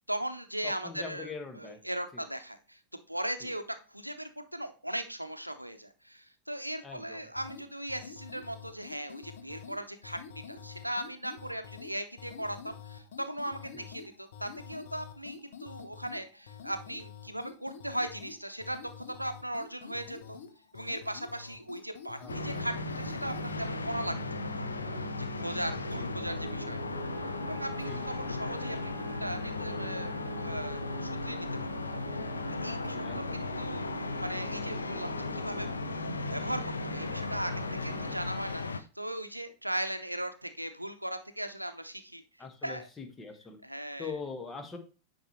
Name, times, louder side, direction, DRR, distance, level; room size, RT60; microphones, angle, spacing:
voice 1, 0.1-1.3 1.6-2.8 3.1-3.6 3.9-20.4 20.7-24.6 25.2-26.8 27.4-28.8 29.0-30.1 30.4-31.5 32.2-32.3 32.6-33.9 34.2-35.7 36.3-42.2 42.6-42.8 43.6-44.1, right 1 dB, 90° right, 8 dB, 0.7 m, -38 dB
voice 2, 0.6-1.8 2.1-2.2 3.4-3.5 6.8-7.3 13.7-13.9 22.2-22.7 25.9-26.1 27.9-28.3 32.6-33.4 42.4-43.6 44.0-44.8, left 4 dB, 15° left, 6 dB, 1.4 m, -43 dB
sound 1, 7.4-23.6, left 6 dB, 60° left, 1.0 m, -48 dB
sound 2, 22.3-38.8, left 4 dB, 75° left, 0.6 m, -36 dB
sound 3, 22.3-38.2, right 9 dB, 50° right, 0.9 m, -44 dB
9.7 x 4.7 x 3.0 m, 0.34 s
figure-of-eight pair, 90°, 0 cm